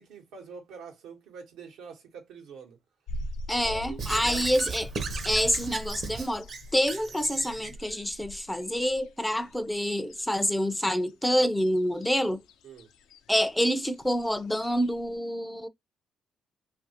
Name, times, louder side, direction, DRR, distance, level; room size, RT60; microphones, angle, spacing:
voice 1, 0.0-2.8 3.6-4.6 12.6-12.9, right 6 dB, 90° right, 1.0 m, -45 dB
sound 1, 3.1-15.2, left 1 dB, 85° left, 0.4 m, -43 dB
voice 2, 3.5-4.9 5.2-6.5 6.7-12.4 13.3-15.7, equal, 5° left, 0.4 m, -27 dB
Squeak / Writing, 4.0-7.7, right 5 dB, 50° right, 0.7 m, -37 dB
2.7 x 2.5 x 2.8 m
cardioid pair, 90°, 0 cm